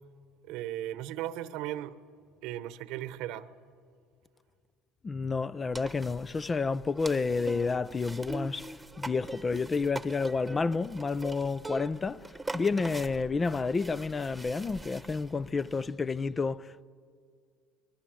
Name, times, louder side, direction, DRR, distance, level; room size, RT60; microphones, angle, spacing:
voice 1, 0.4-2.0 2.4-3.5, right 13 dB, 70° right, 1.0 m, -37 dB
voice 2, 5.0-8.7 9.0-12.3 12.5-16.8, left 4 dB, 25° left, 0.5 m, -30 dB
sound 1, 5.7-15.9, right 2 dB, 10° right, 1.2 m, -43 dB
26.0 x 20.5 x 7.7 m
supercardioid pair, 95°, 0 cm